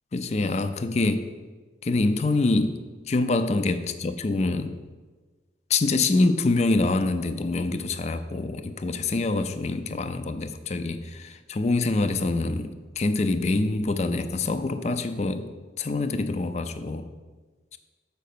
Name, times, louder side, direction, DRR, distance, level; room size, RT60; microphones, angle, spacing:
voice 1, 0.1-1.3 1.8-2.8 3.1-4.8 5.7-15.5 15.8-17.0 17.7-17.8, left 3 dB, 35° left, 10 dB, 0.4 m, -25 dB
6.6 x 5.1 x 6.6 m, 1.4 s
head